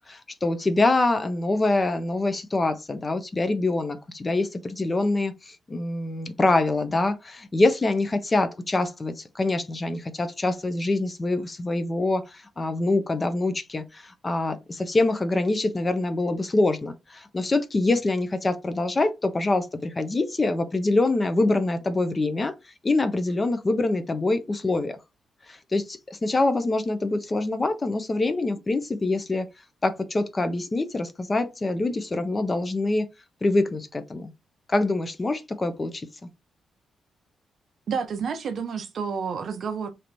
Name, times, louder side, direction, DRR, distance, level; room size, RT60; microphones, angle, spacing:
voice 1, 0.1-22.5 22.8-25.0 25.5-29.5 29.8-33.1 33.4-34.3 34.7-36.3, left 2 dB, 20° left, 0.5 m, -25 dB
voice 2, 37.9-39.9, right 6 dB, 50° right, 0.6 m, -30 dB
3.2 x 2.9 x 3.9 m
wide cardioid pair, 175°, 0 cm